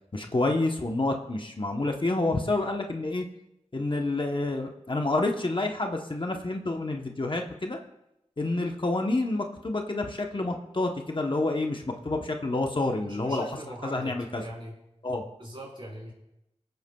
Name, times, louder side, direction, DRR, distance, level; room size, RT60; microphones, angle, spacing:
voice 1, 0.1-3.3 3.7-7.8 8.4-13.4 13.8-14.4 15.0-15.2, left 2 dB, 45° left, 3 dB, 0.9 m, -28 dB
voice 2, 13.0-14.7 15.4-16.1, equal, 50° right, -4 dB, 3.9 m, -41 dB
22.0 x 8.0 x 2.3 m, 0.86 s
wide cardioid pair, 55°, 12 cm